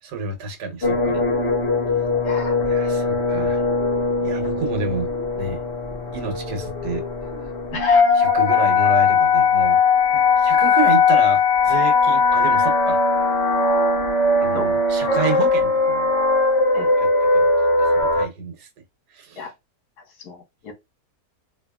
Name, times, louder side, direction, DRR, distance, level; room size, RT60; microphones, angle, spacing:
voice 1, 0.0-1.2 2.7-3.6 4.2-5.1 5.4-5.6 6.1-7.0 8.1-9.8 10.1-13.0 14.4-16.1 17.0-17.5 17.8-18.7 19.1-19.5, right 4 dB, 75° right, 1.5 m, -29 dB
sound 1, 0.8-18.3, left 4 dB, 45° left, 1.2 m, -19 dB
voice 2, 2.2-2.8 4.2-4.3 7.7-8.1 14.5-14.7 16.7-16.9 19.4-19.5 20.2-20.7, left 4 dB, 70° left, 1.8 m, -32 dB
4.0 x 3.0 x 2.2 m
omnidirectional pair, 1.8 m